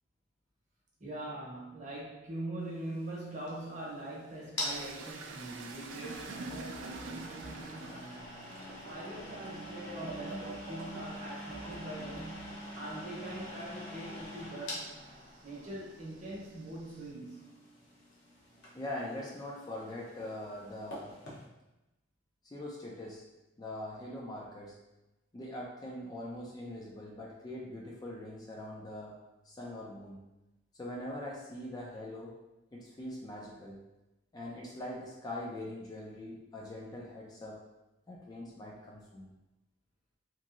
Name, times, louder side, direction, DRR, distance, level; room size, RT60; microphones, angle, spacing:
voice 1, 1.0-8.4 8.9-14.9 15.4-17.4, right 1 dB, 40° right, -5 dB, 0.9 m, -43 dB
sound 1, 2.7-21.4, left 1 dB, 60° left, 0.8 m, -46 dB
sound 2, 4.6-15.6 16.0-17.1, right 3 dB, 85° right, 0.4 m, -47 dB
voice 2, 18.7-21.1 22.5-23.2 23.6-24.7 25.3-29.2 29.4-30.2 30.7-32.3 32.7-33.8 34.3-37.6 38.1-39.3, left 1 dB, 20° left, -3 dB, 0.4 m, -42 dB
2.9 x 2.6 x 2.4 m, 0.98 s
head